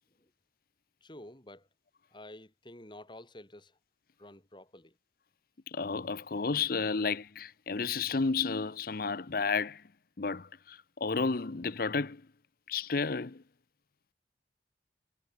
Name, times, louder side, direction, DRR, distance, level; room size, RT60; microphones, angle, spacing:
voice 1, 1.0-1.7 2.1-3.8 4.2-5.0, left 1 dB, 25° left, 3.3 m, -50 dB
voice 2, 5.7-9.8 10.2-12.2 12.7-13.4, left 4 dB, 55° left, 0.7 m, -32 dB
head